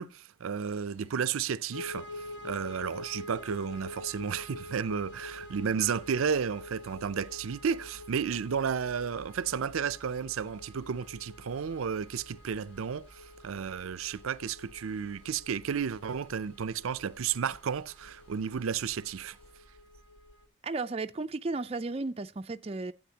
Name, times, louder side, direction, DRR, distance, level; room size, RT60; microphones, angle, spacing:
voice 1, 0.0-19.4, right 7 dB, 90° right, 0.5 m, -33 dB
Domestic sounds home sounds, 0.7-19.5, left 2 dB, 30° left, 5.5 m, -67 dB
sound 1, 1.7-20.4, left 1 dB, 60° left, 1.1 m, -47 dB
voice 2, 20.6-22.9, right 3 dB, 30° right, 0.4 m, -34 dB
12.0 x 8.6 x 2.8 m
head